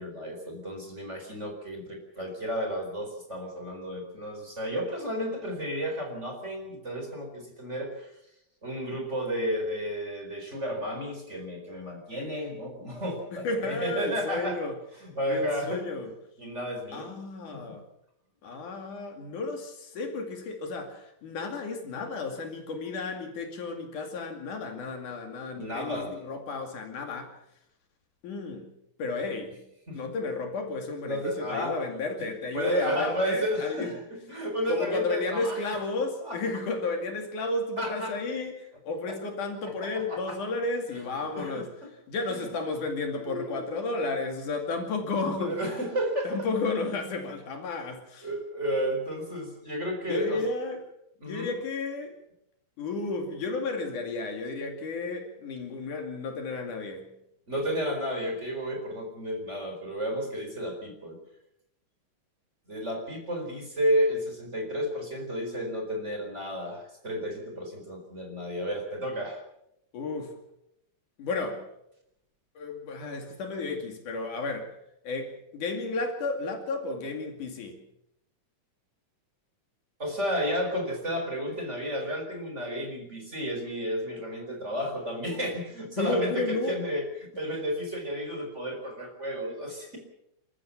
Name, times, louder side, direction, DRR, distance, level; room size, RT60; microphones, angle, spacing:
voice 1, 0.0-8.1 8.6-14.6 15.0-15.9 16.4-17.2 17.5-17.7 21.9-22.0 25.6-26.1 29.9-30.0 31.0-31.8 32.2-32.3 32.5-34.0 34.3-36.4 37.8-38.2 39.1-39.2 40.1-40.4 40.9-41.0 41.4-41.6 42.3-42.5 43.2-43.8 45.4-46.3 48.2-50.4 51.2-51.5 57.5-61.2 62.7-69.4 80.0-90.0, equal, 20° right, 4.5 m, -32 dB
voice 2, 13.3-14.7 15.3-16.1 16.9-17.8 18.4-27.4 28.2-28.7 29.0-29.6 29.9-33.9 34.7-41.7 42.1-45.6 46.3-48.3 50.1-50.8 51.2-52.1 52.8-57.1 69.9-70.3 71.2-71.7 72.6-74.7 75.0-77.8 86.0-86.8, left 3 dB, 70° left, 3.9 m, -33 dB
28.5 x 13.5 x 7.2 m
omnidirectional pair, 3.8 m